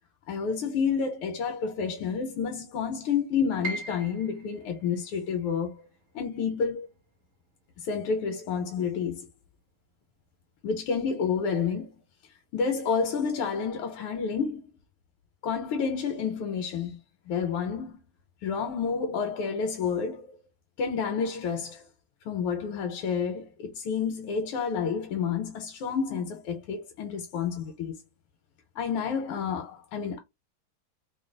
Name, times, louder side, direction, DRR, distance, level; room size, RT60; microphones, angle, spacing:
voice 1, 0.3-5.8 6.1-6.9 7.8-9.3 10.6-11.9 12.5-14.6 15.4-17.0 17.3-18.0 18.4-20.3 20.8-21.8 22.3-27.9 28.8-30.2, left 6 dB, 85° left, 1.6 m, -29 dB
Piano, 3.6-9.6 9.9-11.0 11.5-11.6 12.3-12.6, right 2 dB, 65° right, 0.7 m, -44 dB
3.9 x 2.1 x 3.9 m
omnidirectional pair, 2.4 m